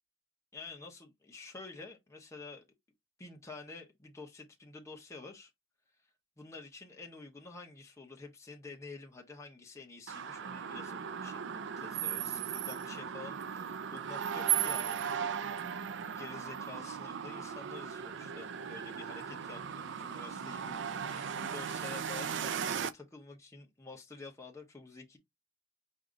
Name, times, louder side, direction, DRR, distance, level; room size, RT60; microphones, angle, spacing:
voice 1, 0.5-2.6 3.2-5.5 6.4-25.2, left 3 dB, 15° left, 0.9 m, -49 dB
sound 1, 10.1-22.9, right 8 dB, 65° right, 0.4 m, -37 dB
4.9 x 2.6 x 3.8 m
head